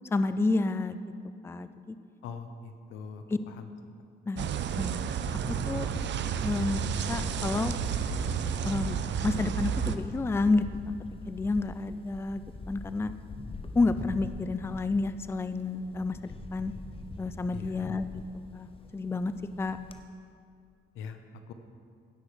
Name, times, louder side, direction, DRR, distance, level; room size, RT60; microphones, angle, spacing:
voice 1, 0.1-1.0 1.4-2.0 3.3-3.4 4.3-4.5 4.8-5.1 5.7-5.9 6.4-7.7 8.6-10.6 11.3-12.4 12.7-13.1 13.7-16.7 17.2-18.2 18.5-19.3 19.6-19.8, left 3 dB, 10° left, 12 dB, 0.4 m, -30 dB
voice 2, 2.2-3.7 17.5-17.9 20.9-21.5, left 5 dB, 90° left, 8 dB, 0.9 m, -42 dB
sound 1, 4.4-10.0, right 8 dB, 65° right, 0.6 m, -31 dB
Camera, 5.2-20.0, left 3 dB, 30° left, 0.9 m, -42 dB
16.5 x 6.0 x 5.0 m, 2.3 s
cardioid pair, 90°, 20 cm